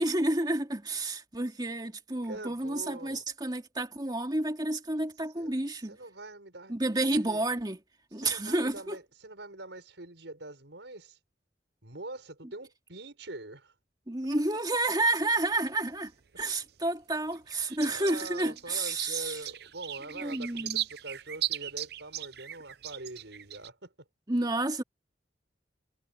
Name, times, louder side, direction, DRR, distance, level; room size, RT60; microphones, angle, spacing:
voice 1, 0.0-6.0 6.7-7.8 8.1-9.0 14.1-16.1 16.4-19.4 20.2-20.8 24.3-24.8, right 2 dB, 25° right, 2.4 m, -30 dB
voice 2, 2.2-3.2 5.4-5.5 5.8-6.7 7.1-7.4 8.2-11.2 11.8-13.7 17.8-23.9, right 2 dB, 80° right, 5.5 m, -44 dB
sound 1, 15.2-16.7 17.1-23.7, right 13 dB, 60° right, 0.7 m, -38 dB
head